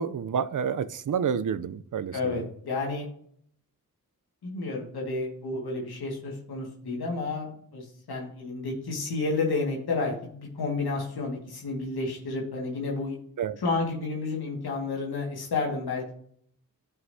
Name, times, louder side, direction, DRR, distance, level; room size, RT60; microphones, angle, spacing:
voice 1, 0.0-2.4 13.4-13.6, right 7 dB, 55° right, 0.6 m, -29 dB
voice 2, 2.1-3.1 4.4-13.2 13.6-16.1, left 3 dB, 90° left, 1.9 m, -31 dB
9.4 x 5.7 x 2.7 m
cardioid pair, 50°, 37 cm